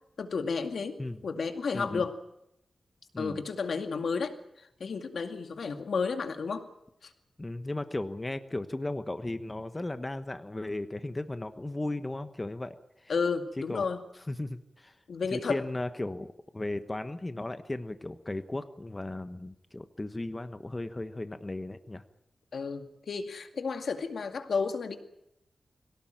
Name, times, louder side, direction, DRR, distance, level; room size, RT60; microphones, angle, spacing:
voice 1, 0.2-1.0 1.2-2.2 3.2-6.7 7.0-7.1 13.1-14.0 15.1-15.6 22.5-25.0, left 5 dB, 80° left, 7 dB, 2.2 m, -32 dB
voice 2, 7.4-13.1 13.7-13.9 14.3-15.0 15.3-16.3 16.5-22.0, left 2 dB, 20° left, 10 dB, 1.2 m, -36 dB
22.5 x 18.0 x 9.1 m, 0.81 s
wide cardioid pair, 100°, 0 cm